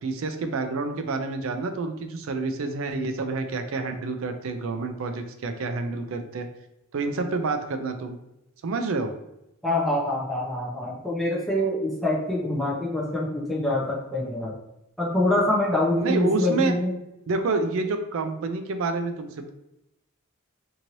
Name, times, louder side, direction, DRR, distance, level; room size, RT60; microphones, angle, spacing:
voice 1, 0.0-6.5 6.9-8.2 8.6-9.1 16.0-16.7 17.3-19.5, right 3 dB, 70° right, 7 dB, 0.4 m, -28 dB
voice 2, 9.6-14.5 15.0-16.9, left 1 dB, ahead, -5 dB, 0.6 m, -25 dB
2.7 x 2.6 x 3.0 m, 0.87 s
head